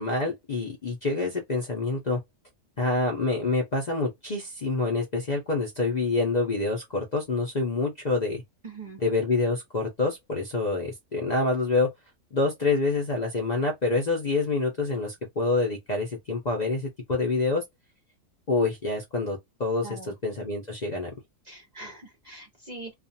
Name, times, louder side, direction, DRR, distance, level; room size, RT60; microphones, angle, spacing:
voice 1, 0.0-2.2 2.8-8.4 9.0-11.9 12.3-17.6 18.5-21.1, left 3 dB, 45° left, 0.6 m, -27 dB
voice 2, 8.6-9.0 19.8-20.1 21.4-22.9, right 3 dB, 40° right, 0.6 m, -42 dB
2.4 x 2.4 x 2.6 m
omnidirectional pair, 1.4 m